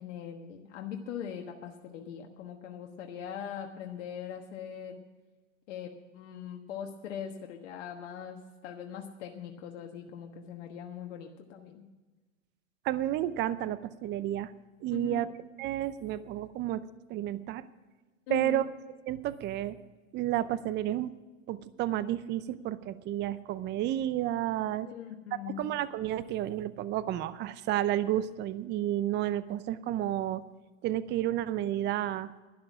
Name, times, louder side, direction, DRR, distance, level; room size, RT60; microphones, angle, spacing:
voice 1, 0.0-5.0 5.7-11.8 14.9-15.3 18.3-18.6 24.8-25.7, left 8 dB, 70° left, 2 dB, 1.4 m, -41 dB
voice 2, 12.8-14.5 14.8-15.3 15.6-17.6 18.3-18.7 19.1-19.8 20.1-21.1 21.5-24.9 25.6-30.4 30.8-32.4, right 12 dB, 30° right, 15 dB, 0.6 m, -31 dB
12.0 x 11.0 x 6.1 m, 1.3 s
hypercardioid pair, 120°, 38 cm